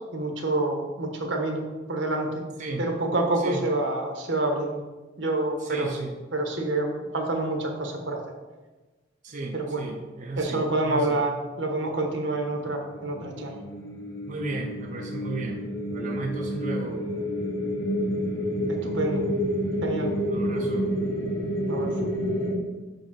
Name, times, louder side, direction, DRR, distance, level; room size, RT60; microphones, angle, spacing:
voice 1, 0.1-1.6 1.9-2.4 2.8-4.8 5.2-5.9 6.3-8.2 9.5-9.9 10.4-13.6 18.7-19.2 19.8-20.1 21.7-21.9, right 2 dB, 80° right, 3 dB, 1.3 m, -27 dB
voice 2, 5.6-6.2 9.2-11.2 14.3-15.6 15.9-17.0 20.2-20.9, right 3 dB, 40° right, 1 dB, 0.6 m, -34 dB
sound 1, 12.5-22.5, equal, 75° left, 1.8 m, -29 dB
5.6 x 5.1 x 5.8 m, 1.2 s
head